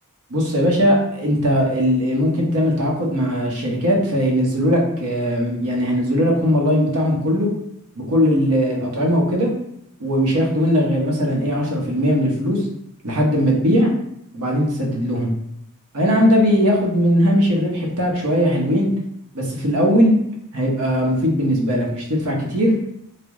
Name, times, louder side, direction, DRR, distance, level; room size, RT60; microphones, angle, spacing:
voice 1, 0.3-7.5 8.0-9.5 10.0-12.7 13.0-13.9 14.3-15.3 15.9-18.9 19.3-20.2 20.5-22.7, equal, 75° right, -2 dB, 0.9 m, -19 dB
3.3 x 2.1 x 3.5 m, 0.75 s
head